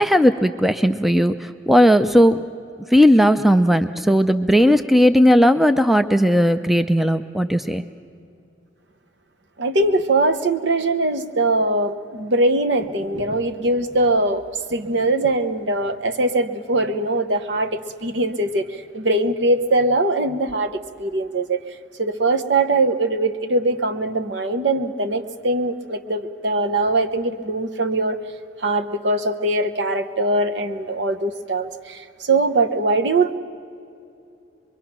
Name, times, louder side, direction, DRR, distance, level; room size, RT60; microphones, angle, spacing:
voice 1, 0.0-2.4 2.9-7.8, equal, ahead, 0.4 m, -16 dB
voice 2, 9.6-14.4 14.7-21.6 22.0-28.2 28.6-33.3, right 2 dB, 65° right, 1.0 m, -21 dB
25.0 x 22.5 x 6.0 m
head